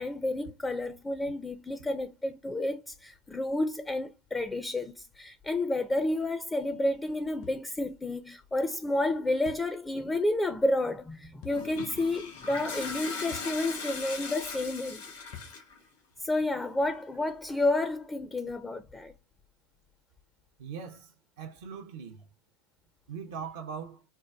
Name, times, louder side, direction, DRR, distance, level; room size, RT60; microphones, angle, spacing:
voice 1, 0.0-15.0 16.2-19.1, left 2 dB, 15° left, 0.4 m, -30 dB
sound 1, 7.4-7.7 9.5-9.7 11.4-11.6 13.3-13.6 15.3-15.6, left 9 dB, 55° left, 0.7 m, -46 dB
Toilet flush, 11.5-15.8, left 4 dB, 75° left, 1.5 m, -39 dB
voice 2, 20.6-22.3 23.1-24.0, right 6 dB, 70° right, 0.5 m, -41 dB
4.4 x 2.2 x 2.2 m
hypercardioid pair, 90°, 0 cm